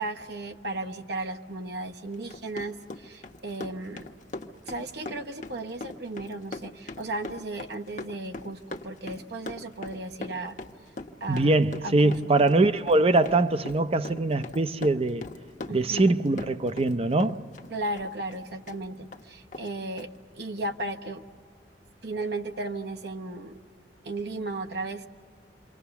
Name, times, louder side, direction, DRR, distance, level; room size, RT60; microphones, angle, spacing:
voice 1, 0.0-4.1 4.7-10.6 11.2-11.5 11.8-12.4 15.7-16.0 17.7-20.1 20.3-21.2 22.0-23.6 24.0-25.0, right 2 dB, 65° right, 1.0 m, -35 dB
Run, 2.1-16.9 17.2-18.8 19.1-19.2 19.5-19.7 20.0-20.1, left 2 dB, 45° left, 0.9 m, -40 dB
voice 2, 11.3-15.2 15.7-17.4, right 2 dB, 35° right, 0.6 m, -23 dB
27.5 x 24.0 x 7.0 m
head